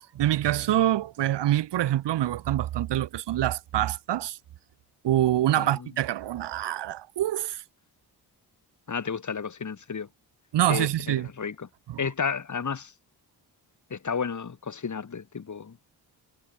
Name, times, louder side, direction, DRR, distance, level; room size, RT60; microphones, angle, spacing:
voice 1, 0.1-4.4 5.0-7.6 10.5-11.3 11.9-12.0, right 13 dB, 90° right, 1.6 m, -25 dB
voice 2, 5.6-5.9 8.9-10.1 10.7-11.7 12.0-12.9 13.9-15.8, left 6 dB, 45° left, 3.0 m, -32 dB
cardioid pair, 65°, 41 cm